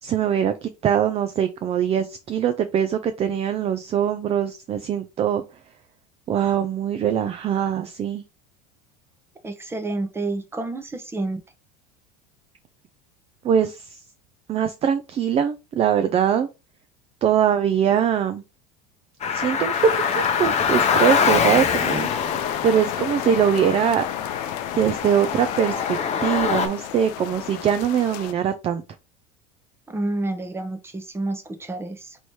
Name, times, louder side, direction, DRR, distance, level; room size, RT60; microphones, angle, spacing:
voice 1, 0.0-5.4 6.3-8.2 13.4-14.0 14.5-16.5 17.2-18.4 19.3-22.1 22.6-24.0 24.8-28.8, right 8 dB, 30° right, 0.4 m, -22 dB
voice 2, 9.4-11.4 29.9-32.2, right 2 dB, 10° right, 0.8 m, -29 dB
Car, 19.2-26.7, left 6 dB, 30° left, 0.8 m, -24 dB
sound 1, 19.7-28.3, left 13 dB, 65° left, 0.4 m, -33 dB
3.1 x 3.1 x 4.2 m
supercardioid pair, 105°, 21 cm